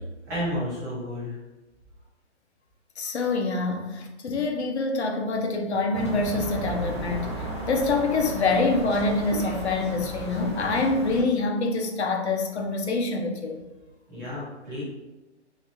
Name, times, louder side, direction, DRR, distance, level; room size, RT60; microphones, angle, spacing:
voice 1, 0.3-1.3 14.1-14.8, equal, 15° right, -8 dB, 0.7 m, -31 dB
voice 2, 3.0-7.3 7.7-13.6 14.2-14.3, left 3 dB, 70° left, 2 dB, 0.7 m, -26 dB
sound 1, 5.9-11.2, right 1 dB, 25° left, 0.3 m, -34 dB
3.3 x 2.8 x 2.8 m, 1.1 s
hypercardioid pair, 175°, 35 cm